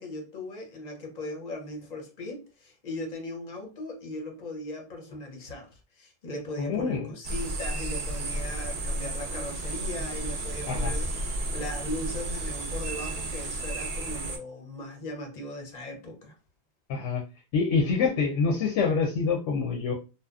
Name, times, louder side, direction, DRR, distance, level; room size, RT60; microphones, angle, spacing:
voice 1, 0.0-11.1 11.5-16.3, left 1 dB, 45° left, 0.6 m, -38 dB
voice 2, 6.6-7.1 10.7-10.9 16.9-17.2 17.5-19.9, left 5 dB, 85° left, 0.9 m, -26 dB
sound 1, 7.2-14.4, right 2 dB, 60° right, 0.4 m, -32 dB
2.8 x 2.1 x 2.3 m
omnidirectional pair, 1.2 m